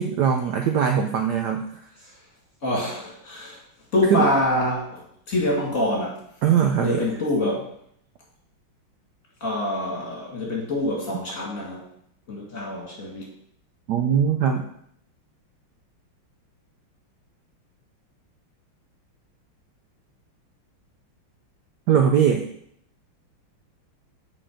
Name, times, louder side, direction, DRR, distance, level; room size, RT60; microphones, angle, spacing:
voice 1, 0.0-1.6 4.1-4.2 6.4-7.0 13.9-14.7 21.9-22.5, right 8 dB, 75° right, 4 dB, 1.0 m, -20 dB
voice 2, 2.6-3.6 3.9-6.2 6.8-7.7 9.4-11.9 12.3-13.3, left 1 dB, 40° left, -3 dB, 2.2 m, -25 dB
7.6 x 4.6 x 5.0 m, 0.69 s
omnidirectional pair, 2.3 m